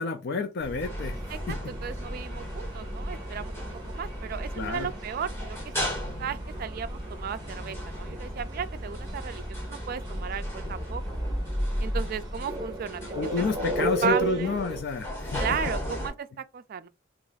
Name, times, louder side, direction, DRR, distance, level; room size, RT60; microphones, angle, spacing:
voice 1, 0.0-1.2 1.5-1.6 4.6-4.9 13.1-15.4, left 5 dB, 55° left, 0.4 m, -30 dB
sound 1, 0.6-16.1, equal, 15° left, 1.3 m, -35 dB
sound 2, 0.9-14.8, right 1 dB, 20° right, 0.8 m, -37 dB
voice 2, 1.3-5.6 6.2-11.0 11.8-13.4 13.8-14.5 15.4-16.9, right 7 dB, 50° right, 0.3 m, -35 dB
2.9 x 2.5 x 3.9 m
head